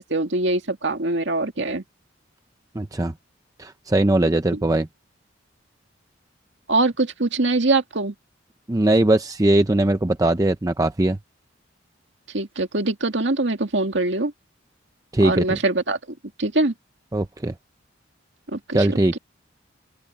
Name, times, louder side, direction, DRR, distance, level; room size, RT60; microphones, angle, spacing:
voice 1, 0.0-1.8 4.5-4.6 6.7-8.1 12.3-14.3 15.2-16.7 18.5-19.2, right 2 dB, 70° right, 2.3 m, -23 dB
voice 2, 2.7-3.1 3.6-4.9 8.7-11.2 15.1-15.6 17.1-17.5 18.7-19.2, right 1 dB, 20° right, 0.6 m, -20 dB
open air
head